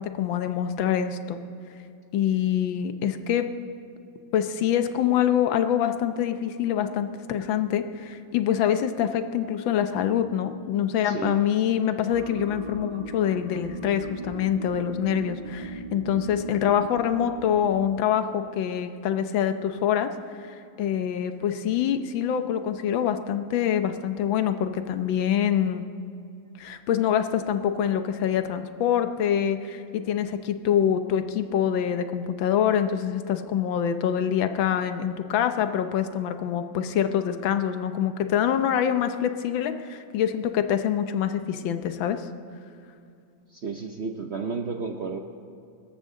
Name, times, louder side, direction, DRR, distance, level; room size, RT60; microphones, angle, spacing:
voice 1, 0.0-1.4 2.1-3.5 4.3-20.1 20.4-25.8 26.6-42.2, left 9 dB, 85° left, 9 dB, 1.6 m, -25 dB
voice 2, 11.0-11.5 43.5-45.2, right 5 dB, 55° right, 4 dB, 0.8 m, -32 dB
sound 1, 12.1-17.6, right 3 dB, 70° right, 2.4 m, -38 dB
23.5 x 13.0 x 3.8 m, 2.5 s
omnidirectional pair, 2.1 m